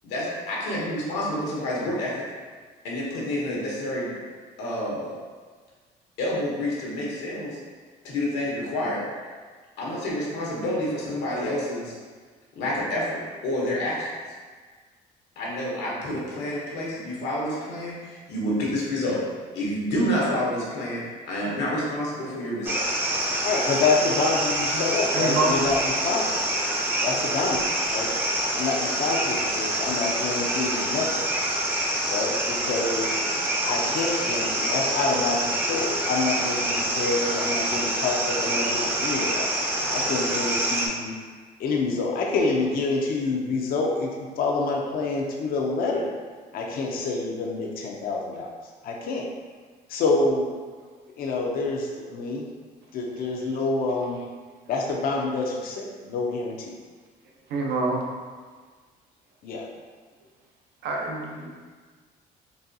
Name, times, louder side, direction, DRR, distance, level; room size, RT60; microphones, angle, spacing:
voice 1, 0.0-2.2 2.8-4.1 4.6-5.1 6.2-7.6 8.0-9.0 9.8-11.9 12.6-14.1 15.4-19.2 19.5-22.8, left 1 dB, 85° left, -5 dB, 1.0 m, -28 dB
sound 1, 22.6-40.9, right 1 dB, 10° right, 0.5 m, -26 dB
voice 2, 23.4-26.5 27.0-28.1 28.6-31.2 32.1-33.2 33.6-39.5 39.9-41.2 41.6-46.1 46.5-48.5 48.8-49.3 49.9-50.5 51.2-52.5 52.9-54.2 54.7-56.8 59.4-59.7, left 3 dB, 60° left, 0 dB, 0.5 m, -27 dB
voice 3, 25.1-25.6 57.5-58.0 60.8-61.5, right 3 dB, 80° right, 0 dB, 0.6 m, -26 dB
4.0 x 2.2 x 2.6 m, 1.5 s
cardioid pair, 110°, 17 cm